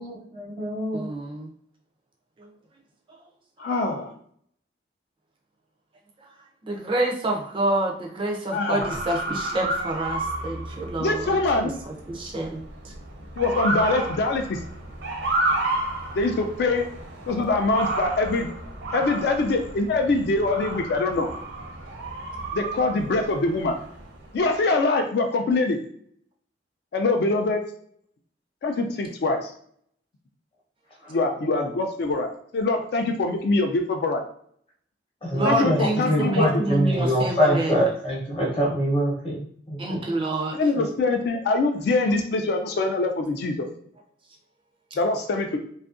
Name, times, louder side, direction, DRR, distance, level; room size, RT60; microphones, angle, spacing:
voice 1, 0.0-1.1 31.0-31.2 35.2-39.4 39.7-40.0, equal, 30° left, -3 dB, 0.7 m, -24 dB
voice 2, 0.9-1.5 2.4-2.5 6.6-11.4 11.9-12.9 35.3-37.8 39.8-40.9, right 2 dB, 30° right, 0 dB, 0.3 m, -28 dB
voice 3, 3.6-4.1 8.5-8.9 11.0-11.8 13.4-14.6 16.1-16.9 17.3-18.5 18.9-21.3 22.5-23.8 24.3-25.8 26.9-27.6 28.6-29.5 31.1-34.2 35.4-36.6 40.5-43.7 45.0-45.6, left 3 dB, 60° left, 4 dB, 0.3 m, -24 dB
Motor vehicle (road) / Siren, 8.8-24.4, right 2 dB, 75° right, 0.6 m, -32 dB
2.6 x 2.4 x 2.4 m, 0.62 s
head